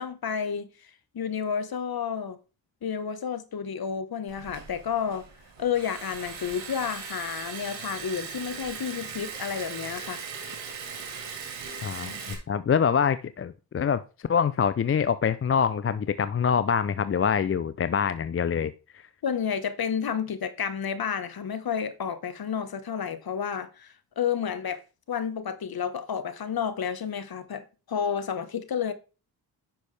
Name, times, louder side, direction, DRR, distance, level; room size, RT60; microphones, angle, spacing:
voice 1, 0.0-2.4 2.8-5.3 5.6-10.2 19.2-24.8 25.1-28.9, left 7 dB, 50° left, 1.4 m, -31 dB
Liquid, 4.3-12.3, right 6 dB, 85° right, 2.2 m, -39 dB
voice 2, 11.8-14.0 14.3-18.7, left 7 dB, 30° left, 0.5 m, -25 dB
10.0 x 6.1 x 3.4 m
supercardioid pair, 50°, 45 cm